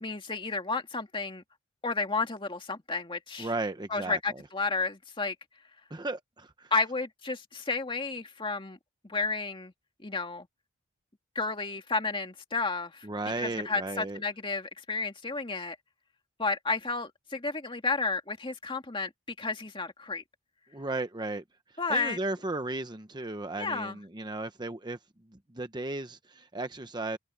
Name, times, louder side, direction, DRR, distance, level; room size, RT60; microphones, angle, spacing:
voice 1, 0.0-1.4 1.8-3.5 3.9-5.4 6.7-8.8 9.0-9.7 10.0-10.5 11.4-13.1 13.4-15.8 16.4-19.1 19.4-20.2 21.8-22.2 23.6-24.0, left 4 dB, 25° left, 2.1 m, -32 dB
voice 2, 3.4-4.2 5.9-6.7 13.0-14.2 20.7-21.4 21.9-25.0 25.3-27.2, right 2 dB, 20° right, 0.9 m, -35 dB
head